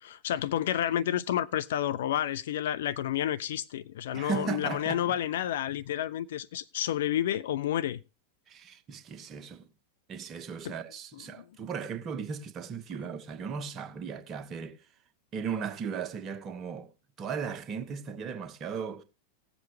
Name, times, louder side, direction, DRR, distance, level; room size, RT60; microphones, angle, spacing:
voice 1, 0.0-8.0 10.6-10.7 11.4-11.5, left 11 dB, 60° left, 0.5 m, -30 dB
voice 2, 4.1-5.2 8.5-9.7 10.1-14.8 15.3-16.9 17.2-19.0, right 6 dB, 30° right, 1.2 m, -36 dB
18.0 x 7.5 x 3.2 m
figure-of-eight pair, 90°, 0 cm